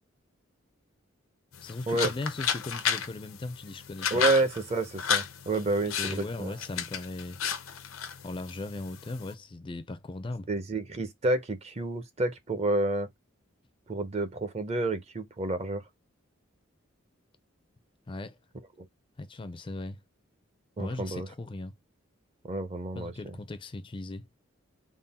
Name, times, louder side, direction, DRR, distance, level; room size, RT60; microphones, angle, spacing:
sound 1, 1.5-9.3, left 7 dB, 90° left, 0.6 m, -33 dB
voice 1, 1.6-4.2 5.8-7.4 8.2-10.5 18.1-18.4 19.2-20.0 20.8-21.7 23.0-24.3, left 2 dB, 25° left, 0.4 m, -38 dB
voice 2, 4.1-6.5 10.5-13.1 13.9-15.8 18.8-18.9 20.8-21.3 22.4-23.3, right 2 dB, 30° right, 0.5 m, -29 dB
3.7 x 2.1 x 4.0 m
head